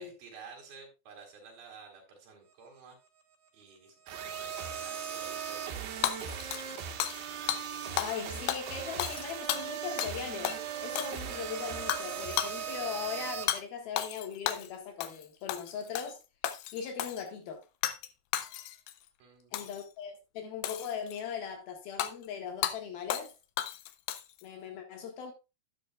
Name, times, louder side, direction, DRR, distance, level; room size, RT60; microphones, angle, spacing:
voice 1, 0.0-3.0 3.5-6.9 19.2-19.7, right 5 dB, 60° right, 4.9 m, -53 dB
sound 1, 4.1-13.4, right 8 dB, 80° right, 3.5 m, -38 dB
Hammer / Shatter, 6.0-7.2 7.5-7.6 8.0-8.2 8.5-10.2 10.4-10.6 11.0-11.4 11.9-12.1 12.4-12.6 13.5-13.6 14.0-14.7 15.0-15.2 15.5-16.1 16.4-17.2 17.8-18.1 18.3-18.9 19.5-19.8 20.6-21.2 22.0-22.1 22.6-22.8 23.1-23.3 23.6-24.4, left 12 dB, 80° left, 2.0 m, -33 dB
voice 2, 8.0-16.2 16.7-17.6 19.5-23.3 24.4-25.3, left 7 dB, 65° left, 3.3 m, -39 dB
12.0 x 9.3 x 2.4 m
omnidirectional pair, 4.9 m